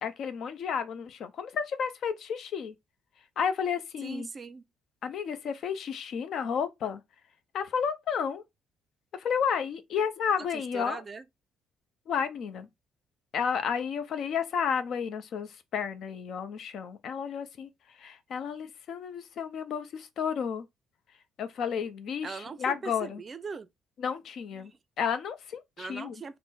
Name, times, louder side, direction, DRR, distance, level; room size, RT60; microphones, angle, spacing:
voice 1, 0.0-2.7 3.4-4.3 5.0-7.0 7.5-8.4 9.1-11.0 12.1-12.7 13.3-17.7 18.0-20.6 21.4-23.2 24.0-24.7 25.0-26.1, left 7 dB, 65° left, 0.6 m, -32 dB
voice 2, 4.0-4.6 10.7-11.2 22.2-23.7 24.6-24.8 25.8-26.4, right 4 dB, 35° right, 0.4 m, -40 dB
3.6 x 2.1 x 4.2 m
cardioid pair, 95°, 0 cm